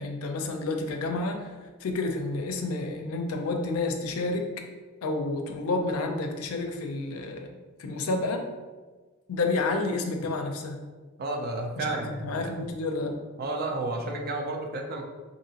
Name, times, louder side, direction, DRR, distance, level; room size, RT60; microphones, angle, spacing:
voice 1, 0.0-1.5 1.8-4.5 5.0-8.4 9.3-10.8 11.8-13.1, left 3 dB, 85° left, 4 dB, 0.4 m, -30 dB
voice 2, 11.2-12.5 13.4-15.1, right 2 dB, 45° right, 2 dB, 0.3 m, -32 dB
2.8 x 2.6 x 2.7 m, 1.3 s
head